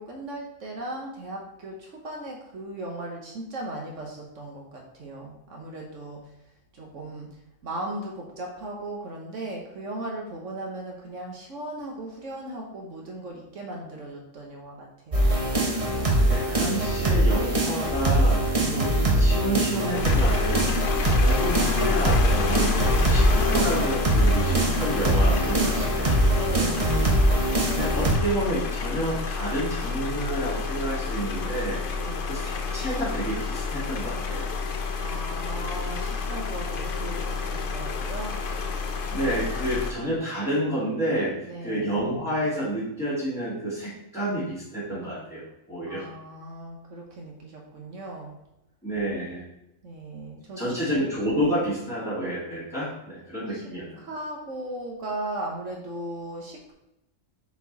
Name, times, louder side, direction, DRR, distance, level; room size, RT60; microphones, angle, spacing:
voice 1, 0.0-6.2 6.7-7.3 7.6-15.3 26.3-27.1 32.0-32.4 35.0-38.4 41.5-41.9 45.8-48.3 49.8-50.8 53.5-53.7 54.0-56.7, right 1 dB, 70° right, 0 dB, 1.5 m, -37 dB
sound 1, 15.1-28.2, right 1 dB, 30° right, 0.9 m, -22 dB
voice 2, 16.2-20.6 20.9-26.2 27.5-31.8 32.3-34.6 39.1-41.4 41.6-46.1 48.8-49.4 50.6-54.0, right 1 dB, 5° left, -12 dB, 2.5 m, -30 dB
sound 2, 19.9-39.9, left 4 dB, 50° left, 0.7 m, -29 dB
6.7 x 4.4 x 4.1 m, 0.87 s
omnidirectional pair, 1.4 m